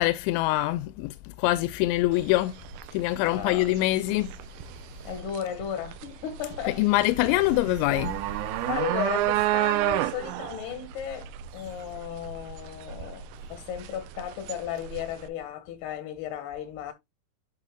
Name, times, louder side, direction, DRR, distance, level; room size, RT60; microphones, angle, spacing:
voice 1, 0.0-2.5 2.9-4.3 6.6-8.2, left 17 dB, 90° left, 2.8 m, -24 dB
sound 1, 2.1-15.3, right 14 dB, 90° right, 3.0 m, -32 dB
voice 2, 3.2-3.7 5.0-6.8 8.7-16.9, left 10 dB, 70° left, 3.5 m, -35 dB
10.0 x 6.1 x 2.3 m
omnidirectional pair, 5.1 m